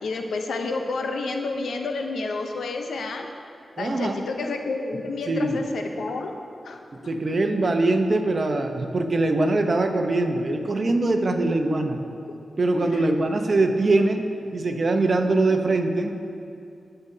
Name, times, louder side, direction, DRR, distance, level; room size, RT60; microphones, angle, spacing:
voice 1, 0.0-3.3 3.8-6.4 6.6-6.8 12.8-13.1 13.4-13.6, left 3 dB, 90° left, 4 dB, 0.8 m, -30 dB
voice 2, 3.8-4.2 5.3-5.6 7.1-12.0 12.6-14.2 14.5-16.2, right 2 dB, 50° right, 5 dB, 0.9 m, -22 dB
18.5 x 6.8 x 2.8 m, 2.6 s
cardioid pair, 65°, 0 cm